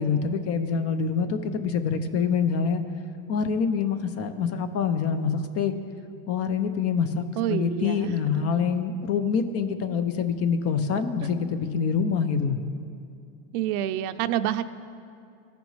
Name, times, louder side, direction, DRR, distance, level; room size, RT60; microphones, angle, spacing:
voice 1, 0.0-2.8 3.3-5.7 6.3-7.2 7.5-12.6, left 6 dB, 35° left, 10 dB, 0.5 m, -25 dB
voice 2, 7.4-8.2 13.5-14.6, right 11 dB, 85° right, 12 dB, 0.5 m, -27 dB
15.0 x 5.2 x 3.1 m, 2.4 s
supercardioid pair, 120°, 44 cm